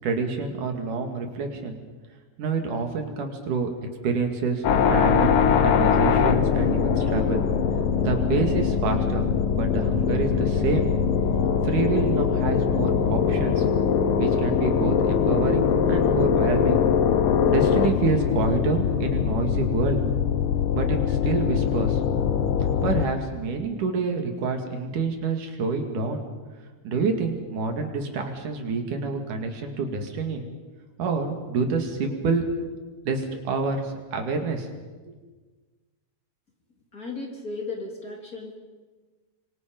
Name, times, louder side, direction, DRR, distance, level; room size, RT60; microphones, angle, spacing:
voice 1, 0.0-1.8 2.4-3.7 4.0-7.4 8.0-9.3 9.5-10.9 11.6-13.6 14.2-16.8 17.5-20.0 20.7-22.0 22.8-26.2 26.8-30.4 31.0-32.4 33.1-34.7, right 4 dB, 75° right, 4 dB, 3.7 m, -27 dB
sound 1, 4.6-23.1, left 7 dB, 60° left, 1.5 m, -22 dB
voice 2, 36.9-38.6, left 3 dB, 30° left, 1 dB, 3.1 m, -35 dB
26.0 x 24.5 x 5.3 m, 1.3 s
omnidirectional pair, 3.7 m